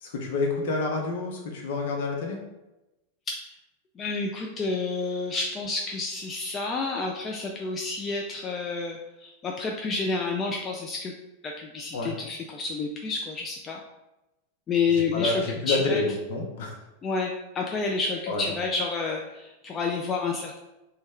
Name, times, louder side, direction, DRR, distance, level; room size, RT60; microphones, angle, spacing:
voice 1, 0.0-2.4 11.9-12.1 15.1-16.8 18.3-18.4, left 3 dB, 55° left, 0 dB, 0.7 m, -28 dB
voice 2, 4.0-11.1 11.4-13.8 14.7-16.0 17.0-20.6, left 4 dB, 25° left, 0 dB, 0.3 m, -29 dB
3.0 x 2.2 x 3.5 m, 0.98 s
figure-of-eight pair, 90°, 0 cm